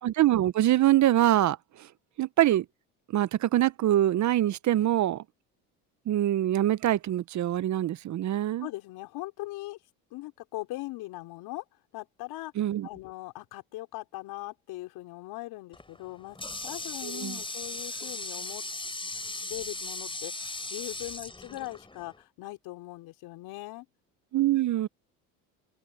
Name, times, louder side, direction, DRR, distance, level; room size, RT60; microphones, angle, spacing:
voice 1, 0.0-1.9 2.2-2.7 3.1-5.2 6.1-8.7 12.6-12.9 17.0-17.4 24.3-24.9, right 13 dB, 45° right, 0.9 m, -24 dB
voice 2, 8.6-9.8 10.1-11.6 11.9-12.5 12.8-16.4 16.6-18.6 19.5-23.9, left 18 dB, 70° left, 4.4 m, -40 dB
Water tap faucet, 15.7-22.2, left 2 dB, 15° left, 4.6 m, -38 dB
supercardioid pair, 80°, 39 cm